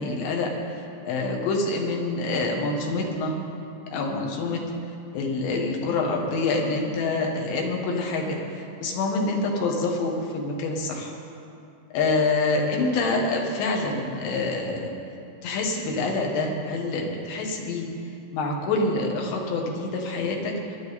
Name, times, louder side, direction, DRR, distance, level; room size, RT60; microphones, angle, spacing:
voice 1, 0.0-3.4 3.9-4.6 5.1-11.1 11.9-14.9 15.4-17.9 18.3-20.8, left 3 dB, 85° left, 0 dB, 3.7 m, -26 dB
22.5 x 11.0 x 4.2 m, 2.7 s
omnidirectional pair, 4.9 m